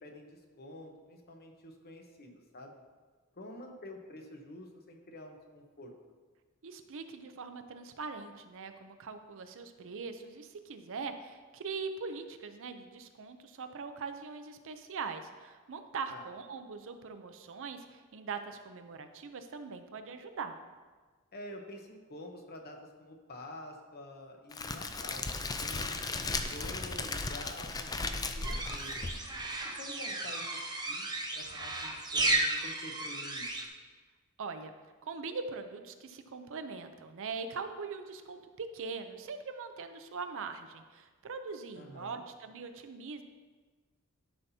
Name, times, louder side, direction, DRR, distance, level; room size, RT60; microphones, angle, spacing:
voice 1, 0.0-2.8 3.3-5.9 16.1-16.3 21.3-25.2 25.6-29.0 29.6-30.4 30.8-31.1 31.3-33.6 41.8-42.2, left 1 dB, 45° left, 3 dB, 1.0 m, -48 dB
voice 2, 6.6-20.6 34.4-34.7 35.0-43.2, right 4 dB, 65° right, 8 dB, 0.6 m, -42 dB
Crackle, 24.5-29.6, left 3 dB, 15° left, 0.4 m, -36 dB
sound 1, 28.4-33.7, right 2 dB, 20° right, 0.8 m, -34 dB
12.0 x 5.7 x 2.8 m, 1.4 s
head